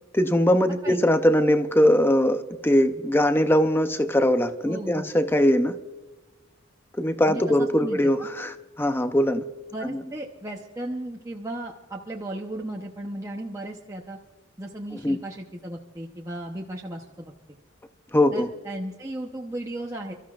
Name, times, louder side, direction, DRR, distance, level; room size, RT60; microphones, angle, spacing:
voice 1, 0.1-5.8 7.0-9.4 9.9-10.0 15.0-15.2 18.1-18.5, equal, 10° left, 9 dB, 0.6 m, -21 dB
voice 2, 4.6-5.1 7.3-8.3 9.7-14.2 14.6-17.3 18.3-20.1, right 1 dB, 15° right, -1 dB, 0.8 m, -35 dB
29.5 x 13.5 x 2.4 m, 1.2 s
head